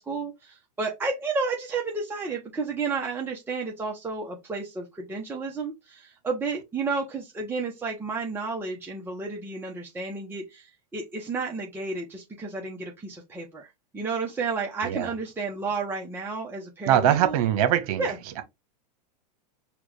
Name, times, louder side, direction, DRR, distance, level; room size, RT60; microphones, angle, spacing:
voice 1, 0.0-13.7 13.9-17.4 18.0-18.2, right 4 dB, 10° right, 0.9 m, -32 dB
voice 2, 16.9-18.1, right 11 dB, 60° right, 1.1 m, -22 dB
4.5 x 2.4 x 3.3 m
hypercardioid pair, 110°, 21 cm